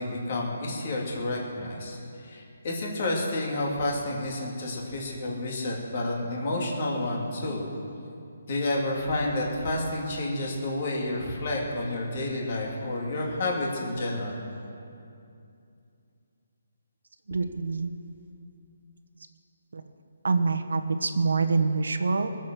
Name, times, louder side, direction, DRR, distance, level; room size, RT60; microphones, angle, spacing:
voice 1, 0.0-7.7 8.5-14.4, left 2 dB, 35° left, -2 dB, 2.7 m, -30 dB
voice 2, 17.3-17.9 19.7-19.8 20.2-22.3, right 4 dB, 90° right, 8 dB, 1.2 m, -25 dB
21.0 x 7.5 x 7.6 m, 2.6 s
hypercardioid pair, 175°, 0 cm